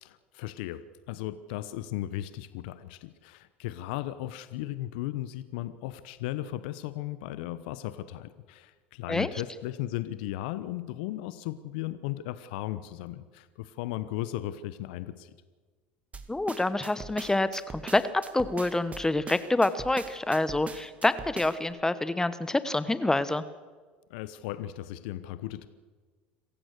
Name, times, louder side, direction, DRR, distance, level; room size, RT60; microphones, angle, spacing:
voice 1, 0.0-15.3 24.1-25.7, left 14 dB, 70° left, 14 dB, 0.9 m, -36 dB
sound 1, 16.1-21.7, right 4 dB, 25° right, 2.2 m, -42 dB
voice 2, 16.3-23.4, left 2 dB, 10° left, 14 dB, 1.1 m, -27 dB
27.0 x 15.0 x 6.6 m, 1.4 s
hypercardioid pair, 80°, 5 cm